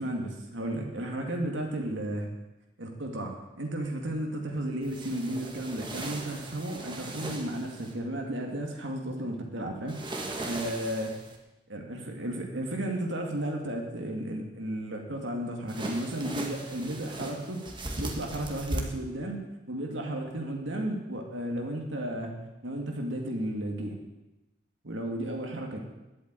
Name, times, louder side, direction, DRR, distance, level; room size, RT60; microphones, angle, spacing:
voice 1, 0.0-2.3 2.8-11.1 11.7-17.6 17.9-19.4 19.7-22.3 22.6-24.0 24.8-25.8, right 1 dB, 80° right, 1 dB, 2.2 m, -33 dB
sound 1, 4.8-7.9 9.9-11.4 15.7-18.8, right 2 dB, 25° right, 1.7 m, -38 dB
11.0 x 8.4 x 8.9 m, 1.0 s
head